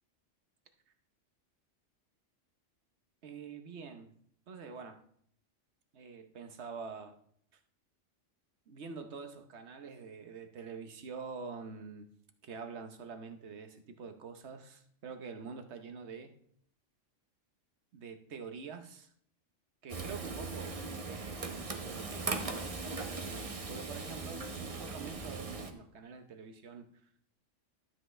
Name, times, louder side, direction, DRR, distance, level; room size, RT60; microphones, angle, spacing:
voice 1, 3.2-4.1 4.5-5.0 5.9-7.1 8.7-12.1 12.4-16.3 17.9-19.1 19.8-22.7 23.2-27.1, right 5 dB, 60° right, 7 dB, 1.1 m, -46 dB
Frying (food), 19.9-25.7, right 4 dB, 30° right, 0.8 m, -39 dB
12.0 x 7.7 x 3.2 m, 0.65 s
omnidirectional pair, 1.3 m